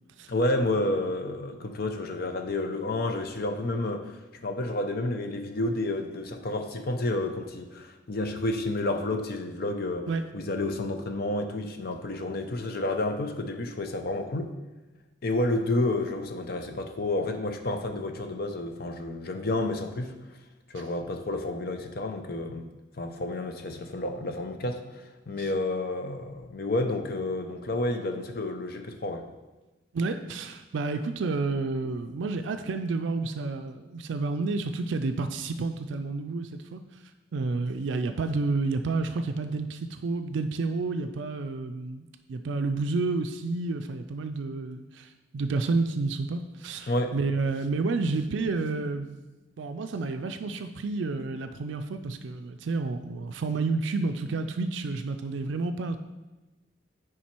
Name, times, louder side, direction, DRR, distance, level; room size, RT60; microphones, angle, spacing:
voice 1, 0.3-10.1 10.3-14.5 15.2-20.1 20.7-22.7 23.0-29.2 46.9-47.1, left 2 dB, 50° left, 6 dB, 0.6 m, -30 dB
voice 2, 29.9-36.8 37.3-49.2 49.6-56.0, right 3 dB, 65° right, 7 dB, 0.4 m, -30 dB
7.2 x 5.0 x 4.5 m, 1.1 s
head